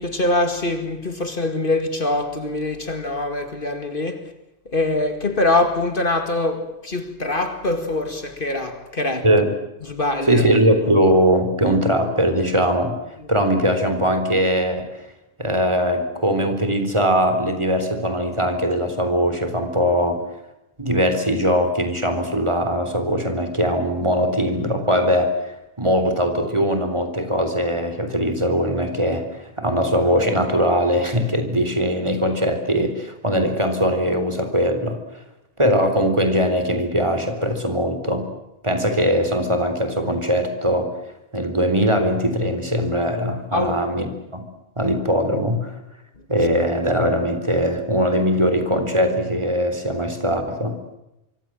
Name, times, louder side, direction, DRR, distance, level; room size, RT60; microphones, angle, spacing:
voice 1, 0.0-4.3 4.7-9.3 9.8-10.4 13.2-13.3 43.5-43.8, left 2 dB, 55° left, 2.3 m, -23 dB
voice 2, 10.3-13.0 13.3-14.9 15.4-20.2 20.8-25.5 25.8-35.0 35.6-38.3 38.6-40.9 41.3-44.4 44.8-45.8 46.3-50.8, equal, 25° right, 4.0 m, -21 dB
26.0 x 24.0 x 7.7 m
omnidirectional pair, 1.1 m